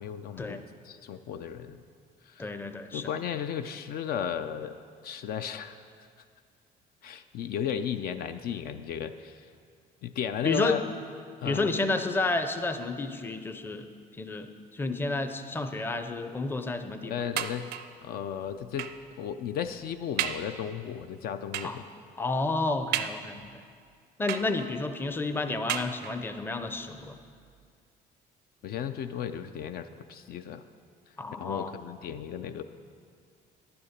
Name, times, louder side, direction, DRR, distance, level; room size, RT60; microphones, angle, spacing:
voice 1, 0.0-1.8 2.2-2.5 2.9-6.1 7.0-9.5 10.0-10.8 11.4-11.7 17.0-17.7 18.0-18.9 19.2-21.9 28.6-30.6 31.3-32.6, left 8 dB, 65° left, 9 dB, 0.4 m, -35 dB
voice 2, 2.4-3.1 10.4-10.8 11.4-13.9 14.2-17.1 21.6-21.8 22.2-23.6 24.2-27.1 31.2-31.7, left 3 dB, 15° left, 8 dB, 0.5 m, -31 dB
sound 1, 17.4-18.0 18.8-19.1 19.6-19.7 20.2-20.6 21.5-21.9 22.9-23.6 24.3-24.9 25.7-26.4 27.2-27.3 27.6-27.7, right 10 dB, 75° right, 0.5 m, -34 dB
11.0 x 7.0 x 5.1 m, 2.2 s
cardioid pair, 110°, 17 cm